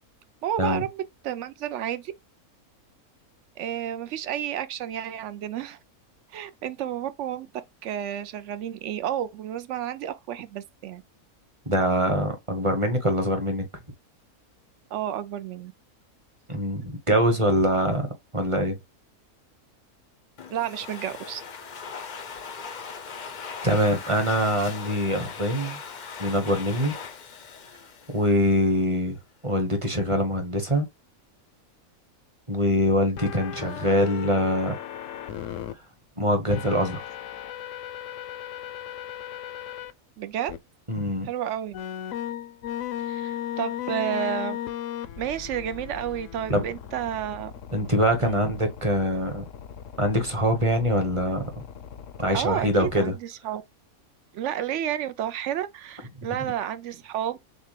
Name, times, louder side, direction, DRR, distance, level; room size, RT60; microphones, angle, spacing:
voice 1, 0.4-2.1 3.6-5.8 6.3-7.5 7.8-11.0 14.9-15.7 20.5-21.4 40.2-40.6 41.2-41.7 43.0-44.6 45.2-47.5 48.2-48.4 52.3-53.6 54.3-57.4, right 10 dB, 65° right, 0.8 m, -31 dB
voice 2, 11.7-13.6 16.5-18.1 18.3-18.7 23.6-25.8 26.2-26.9 28.1-29.2 29.4-30.9 32.5-34.8 35.3-35.5 36.2-37.0 40.9-41.3 46.5-46.6 47.7-49.4 50.0-51.4 52.2-53.1, equal, 25° right, 1.0 m, -24 dB
Domestic sounds home sounds, 20.4-28.8, left 6 dB, 50° left, 0.5 m, -39 dB
sound 1, 33.2-35.7 36.5-39.9 40.5-40.6 41.7-53.0, left 10 dB, 65° left, 0.9 m, -37 dB
6.6 x 2.2 x 3.2 m
omnidirectional pair, 1.6 m